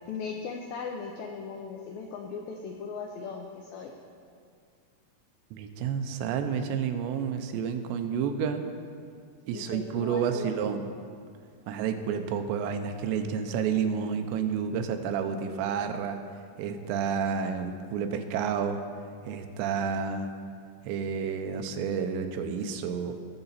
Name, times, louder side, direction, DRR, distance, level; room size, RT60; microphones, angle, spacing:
voice 1, 0.1-3.9 9.5-10.6, left 5 dB, 85° left, 2 dB, 2.0 m, -38 dB
voice 2, 5.5-8.7 9.5-10.9 11.7-16.2 16.6-18.8 19.3-20.3 20.8-23.1, right 7 dB, 85° right, 7 dB, 3.0 m, -30 dB
18.5 x 6.8 x 4.1 m, 2.2 s
omnidirectional pair, 5.0 m